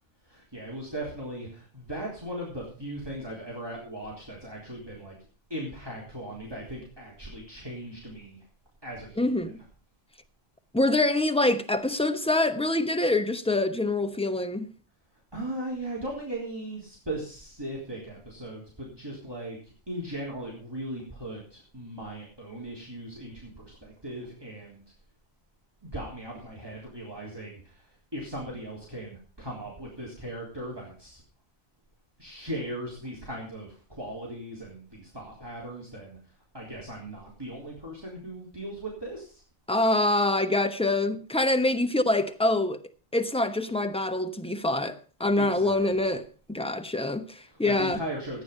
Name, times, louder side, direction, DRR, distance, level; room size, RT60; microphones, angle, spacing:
voice 1, 0.3-5.2 5.5-8.4 8.8-9.6 15.3-19.6 19.9-24.8 25.8-27.9 28.1-31.2 32.2-36.2 36.5-39.4 45.4-46.1 47.5-48.4, right 1 dB, 25° right, 3.7 m, -38 dB
voice 2, 9.2-9.5 10.7-14.7 39.7-42.8 43.1-48.0, left 2 dB, 5° left, 1.0 m, -25 dB
15.0 x 9.3 x 5.5 m
omnidirectional pair, 1.1 m